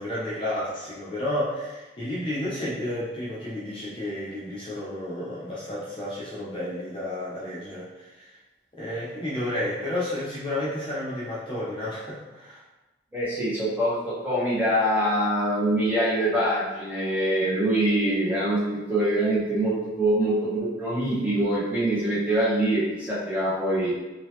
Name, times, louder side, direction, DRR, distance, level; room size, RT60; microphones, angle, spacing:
voice 1, 0.0-8.4 8.7-12.6, left 1 dB, 30° left, -8 dB, 0.7 m, -31 dB
voice 2, 13.1-23.9, right 1 dB, 10° right, -9 dB, 1.2 m, -24 dB
3.9 x 2.7 x 3.1 m, 1.1 s
head